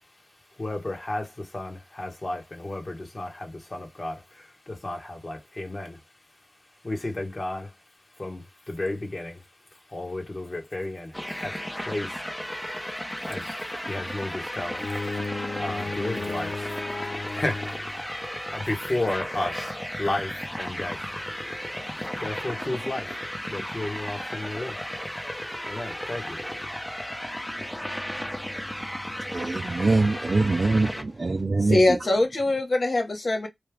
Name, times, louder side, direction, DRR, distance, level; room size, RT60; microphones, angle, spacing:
voice 1, 0.6-6.0 6.8-7.7 8.2-9.4 9.9-12.2 13.2-16.8 17.3-21.2 22.2-23.2 23.5-24.8 25.7-26.4, left 2 dB, 45° left, 1.5 m, -33 dB
sound 1, 11.1-31.0, equal, 10° left, 0.9 m, -34 dB
Bowed string instrument, 14.8-18.0, left 3 dB, 90° left, 0.7 m, -34 dB
voice 2, 29.3-31.8, right 3 dB, 55° right, 0.5 m, -23 dB
voice 3, 31.6-33.5, left 2 dB, 65° left, 1.3 m, -23 dB
3.2 x 2.4 x 3.4 m
cardioid pair, 50°, 0 cm